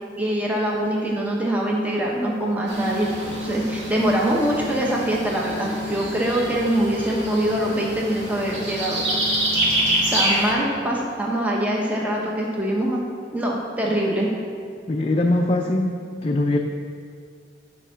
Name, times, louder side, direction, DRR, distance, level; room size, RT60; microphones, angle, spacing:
voice 1, 0.2-9.0 9.2-9.4 10.1-13.0 13.3-14.3, right 1 dB, 10° right, -3 dB, 0.9 m, -24 dB
sound 1, 2.7-10.5, right 1 dB, 70° right, 2.0 m, -26 dB
voice 2, 14.9-16.0 16.2-16.6, left 2 dB, 30° left, 1 dB, 0.4 m, -21 dB
9.8 x 4.6 x 5.6 m, 2.2 s
head